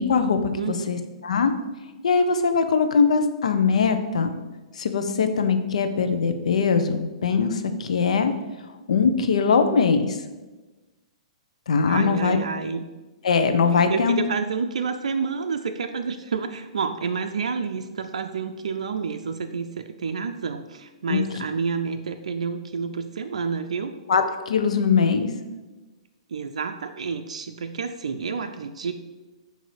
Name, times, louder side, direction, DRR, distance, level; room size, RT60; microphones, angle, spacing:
voice 1, 0.0-1.5 2.0-4.3 4.8-8.3 8.9-10.2 11.7-12.4 13.2-14.2 21.1-21.2 24.1-25.3, left 5 dB, 75° left, 8 dB, 0.6 m, -21 dB
voice 2, 0.6-1.0 11.9-12.8 13.9-23.9 26.3-28.9, right 5 dB, 80° right, 7 dB, 0.4 m, -29 dB
7.7 x 2.7 x 4.8 m, 1.2 s
hypercardioid pair, 125°, 4 cm